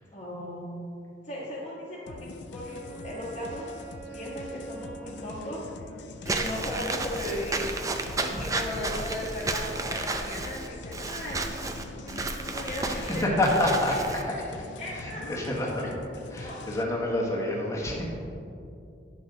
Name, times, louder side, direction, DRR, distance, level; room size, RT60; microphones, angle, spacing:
voice 1, 0.1-0.8 1.2-3.8 4.1-5.6 6.2-7.7 8.2-14.4 14.8-15.7 16.3-16.6, left 1 dB, 35° left, -9 dB, 1.3 m, -37 dB
sound 1, 2.1-16.8, left 3 dB, 70° left, 0.4 m, -44 dB
Bowed string instrument, 2.6-6.1, right 5 dB, 75° right, 1.7 m, -46 dB
Walk footsteps / Squeak, 6.3-14.2, right 2 dB, 20° right, 0.5 m, -32 dB
voice 2, 12.8-14.2 14.9-15.9 16.3-18.1, left 1 dB, 15° left, -4 dB, 1.3 m, -28 dB
9.8 x 6.4 x 3.8 m, 2.6 s
head